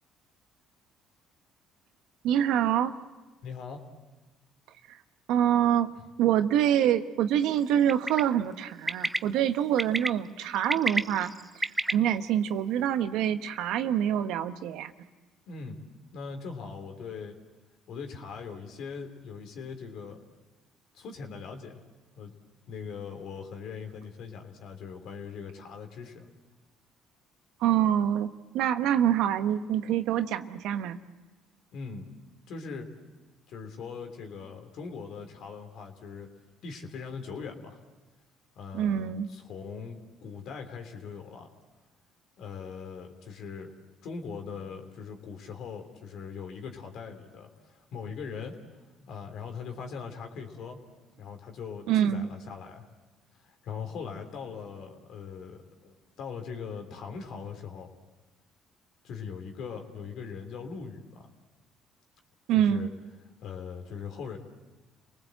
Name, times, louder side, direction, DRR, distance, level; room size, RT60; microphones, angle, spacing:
voice 1, 2.2-2.9 4.9-5.0 5.3-5.9 6.2-11.3 11.6-14.9 27.6-31.0 38.7-39.3 51.9-52.3 62.5-62.9, right 10 dB, 75° right, 9 dB, 1.1 m, -26 dB
voice 2, 3.4-3.8 6.0-6.1 15.5-15.8 16.1-17.4 17.9-20.2 20.9-21.8 22.1-22.3 22.7-26.3 31.7-32.2 32.5-32.9 33.5-36.3 36.6-37.8 38.5-41.5 42.4-43.7 44.0-48.6 49.0-50.8 51.2-52.9 53.4-57.9 59.0-61.3 62.5-62.9 63.4-64.4, left 5 dB, 65° left, 5 dB, 3.3 m, -40 dB
Bird, 7.9-8.2 8.9-9.2 9.8-10.1 10.6-11.9, right 1 dB, 10° right, 0.8 m, -28 dB
30.0 x 19.5 x 7.9 m, 1.2 s
supercardioid pair, 75°, 0 cm